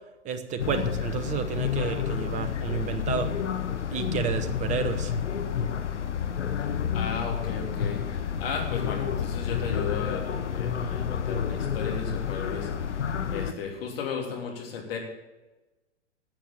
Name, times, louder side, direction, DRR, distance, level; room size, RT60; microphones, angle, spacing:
voice 1, 0.2-3.3 3.9-5.1, right 7 dB, 20° right, 8 dB, 1.0 m, -31 dB
sound 1, 0.6-13.5, left 8 dB, 75° left, 1.0 m, -30 dB
voice 2, 6.9-12.7 13.3-15.0, left 5 dB, 55° left, 0 dB, 3.2 m, -35 dB
12.0 x 7.2 x 7.3 m, 1.1 s
figure-of-eight pair, 110°, 36 cm